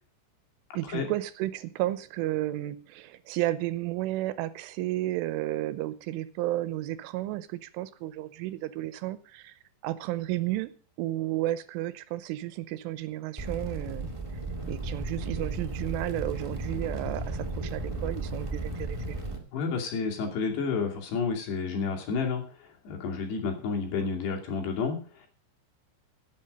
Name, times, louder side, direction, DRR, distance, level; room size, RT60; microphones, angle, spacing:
voice 1, 0.7-9.5 9.8-14.1 14.7-19.2, right 15 dB, 80° right, 15 dB, 3.3 m, -32 dB
sound 1, 13.4-19.4, right 2 dB, 20° right, 0.9 m, -34 dB
voice 2, 19.5-25.3, left 5 dB, 60° left, 3 dB, 4.4 m, -31 dB
16.5 x 8.2 x 5.3 m, 0.39 s
omnidirectional pair, 5.7 m